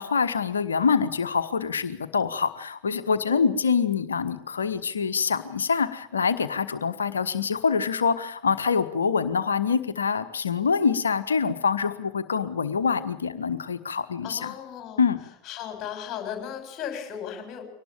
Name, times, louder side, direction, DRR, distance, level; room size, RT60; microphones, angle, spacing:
voice 1, 0.0-14.5 15.0-15.2, left 5 dB, 70° left, 9 dB, 1.3 m, -25 dB
voice 2, 3.3-3.6 14.2-15.0 15.5-17.6, left 9 dB, 30° left, 4 dB, 6.9 m, -36 dB
23.5 x 19.0 x 7.4 m, 0.72 s
figure-of-eight pair, 90°, 0 cm